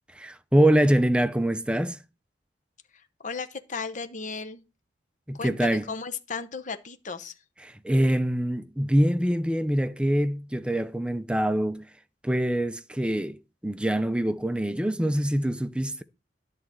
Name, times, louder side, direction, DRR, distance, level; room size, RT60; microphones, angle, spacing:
voice 1, 0.1-2.0 5.3-5.8 7.6-11.9 12.2-16.0, right 1 dB, 5° right, 0.5 m, -24 dB
voice 2, 2.9-4.6 5.3-7.4, left 4 dB, 40° left, 0.9 m, -35 dB
10.5 x 4.2 x 7.7 m
head